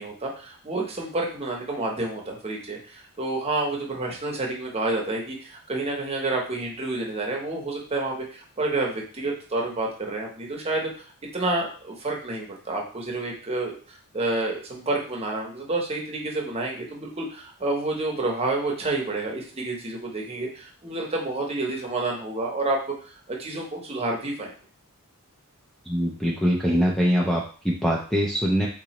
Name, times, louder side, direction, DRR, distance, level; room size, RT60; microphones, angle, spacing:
voice 1, 0.0-10.9 11.3-13.8 14.1-22.8 23.3-24.5, right 2 dB, 25° right, -1 dB, 0.9 m, -29 dB
voice 2, 25.9-28.7, equal, ahead, -3 dB, 0.4 m, -23 dB
3.8 x 3.0 x 2.9 m, 0.41 s
head